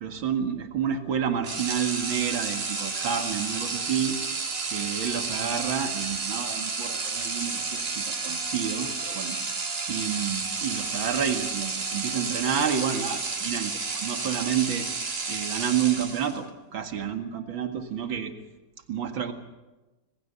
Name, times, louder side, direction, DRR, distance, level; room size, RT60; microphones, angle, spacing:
voice 1, 0.0-4.2 4.7-9.4 9.9-14.9 15.3-18.4 18.9-19.3, right 8 dB, 80° right, 5 dB, 2.7 m, -29 dB
sound 1, 1.4-16.5, right 4 dB, 50° right, 3.0 m, -31 dB
26.5 x 20.0 x 6.9 m, 1.1 s
omnidirectional pair, 2.1 m